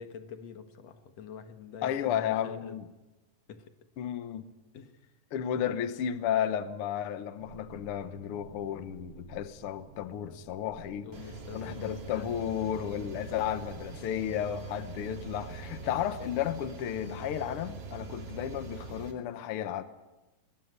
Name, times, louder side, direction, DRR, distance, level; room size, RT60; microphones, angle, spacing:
voice 1, 0.0-2.8 3.5-3.7 4.7-5.1 5.6-5.7 11.0-12.3 13.0-13.2 15.7-15.9, left 6 dB, 55° left, 2.4 m, -46 dB
voice 2, 1.8-2.9 4.0-4.5 5.3-11.1 11.5-19.8, left 10 dB, 85° left, 1.2 m, -33 dB
sound 1, 7.4-15.9, right 6 dB, 70° right, 3.1 m, -53 dB
sound 2, 11.1-19.1, right 4 dB, 45° right, 3.1 m, -43 dB
20.5 x 20.5 x 9.7 m
omnidirectional pair, 4.1 m